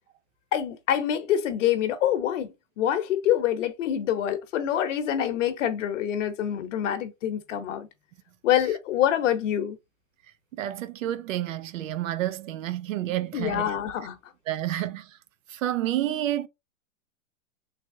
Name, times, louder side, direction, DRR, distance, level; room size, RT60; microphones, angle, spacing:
voice 1, 0.5-7.9 8.4-9.8 13.3-14.2, left 10 dB, 60° left, 0.9 m, -26 dB
voice 2, 10.5-13.7 14.5-15.2 15.5-16.5, right 13 dB, 65° right, 0.6 m, -29 dB
3.4 x 3.2 x 2.6 m
hypercardioid pair, 140°, 42 cm